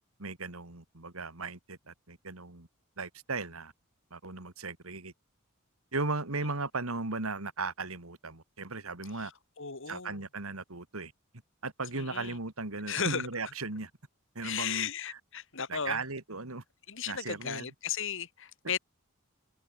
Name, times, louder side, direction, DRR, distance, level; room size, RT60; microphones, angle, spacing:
voice 1, 0.2-2.7 3.0-3.7 4.1-5.1 5.9-9.3 9.9-11.1 11.6-13.9 14.3-15.2 15.7-16.6 17.1-17.7, right 3 dB, 80° right, 2.7 m, -37 dB
voice 2, 9.6-10.2 11.9-12.4 12.9-13.3 14.4-16.0 16.9-18.8, left 7 dB, 65° left, 3.0 m, -35 dB
open air
head